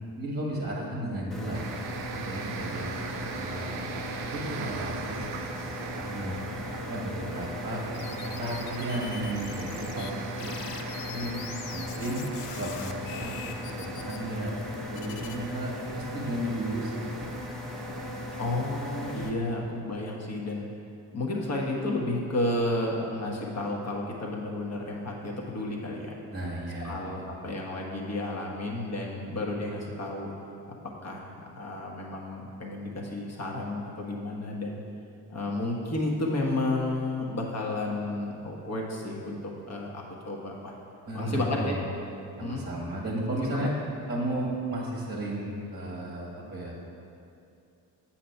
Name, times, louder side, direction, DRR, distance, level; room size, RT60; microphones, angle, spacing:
voice 1, 0.2-2.9 3.4-3.8 4.3-6.4 6.7-7.8 8.2-11.4 11.7-12.2 12.6-17.2 26.3-27.4 41.1-41.8 42.4-43.7 44.1-46.7, right 1 dB, 20° right, -3 dB, 1.3 m, -34 dB
sound 1, 1.3-19.3, left 1 dB, ahead, 1.0 m, -38 dB
sound 2, 1.5-19.1, right 6 dB, 80° right, 0.6 m, -41 dB
sound 3, 7.9-10.1 10.4-15.4, left 9 dB, 65° left, 0.5 m, -43 dB
voice 2, 18.4-20.6 21.1-26.2 26.8-30.3 31.0-34.8 35.3-40.7 41.1-41.7 42.4-42.6 43.5-43.7, left 2 dB, 35° left, -1 dB, 1.3 m, -32 dB
7.4 x 2.9 x 5.7 m, 2.6 s
hypercardioid pair, 45°, 47 cm